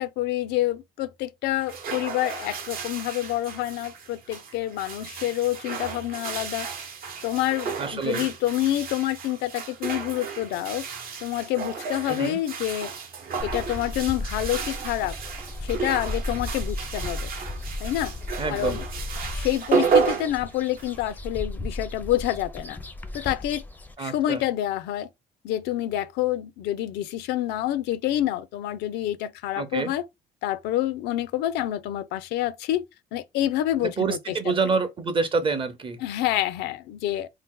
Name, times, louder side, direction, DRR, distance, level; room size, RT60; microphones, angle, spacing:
voice 1, 0.0-6.7 7.2-10.8 11.2-12.9 13.4-15.2 15.6-17.3 17.8-18.1 18.5-18.9 19.3-22.8 23.1-23.6 24.0-25.1 25.4-30.0 30.4-32.8 33.1-34.5 36.0-37.3, left 13 dB, 85° left, 0.4 m, -27 dB
sound 1, 1.5-21.1, right 6 dB, 60° right, 0.8 m, -32 dB
voice 2, 7.8-8.2 12.1-12.4 18.4-18.8 24.0-24.4 29.6-29.9 34.0-36.0, right 4 dB, 30° right, 0.7 m, -27 dB
sound 2, 13.4-23.9, left 2 dB, 10° left, 0.4 m, -35 dB
2.7 x 2.1 x 3.6 m
cardioid pair, 110°, 17 cm